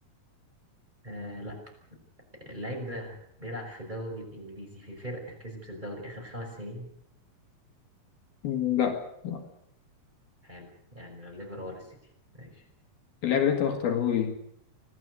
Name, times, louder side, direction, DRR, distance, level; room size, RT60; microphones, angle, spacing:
voice 1, 1.0-1.6 2.4-6.9 10.4-12.0 12.3-12.6, equal, 10° right, 1 dB, 5.9 m, -40 dB
voice 2, 8.4-9.4 13.2-14.4, left 9 dB, 70° left, 4 dB, 3.7 m, -26 dB
25.0 x 17.0 x 8.1 m, 0.72 s
omnidirectional pair, 4.7 m